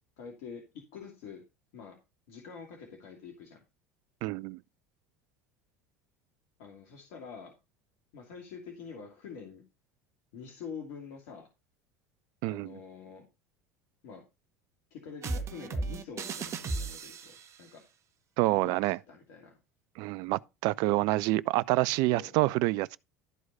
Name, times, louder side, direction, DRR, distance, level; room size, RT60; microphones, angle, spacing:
voice 1, 0.2-1.4 1.7-2.0 2.3-3.6 6.6-7.5 8.1-9.6 10.3-11.5 12.4-13.2 14.0-14.2 14.9-17.8 18.5-19.6 22.1-22.3, left 6 dB, 60° left, 2.6 m, -46 dB
voice 2, 4.2-4.6 12.4-12.7 18.4-19.0 20.0-23.0, right 19 dB, 55° right, 0.5 m, -27 dB
sound 1, 15.2-17.6, right 3 dB, 35° right, 1.3 m, -35 dB
13.0 x 4.7 x 5.4 m
figure-of-eight pair, 70°, 8 cm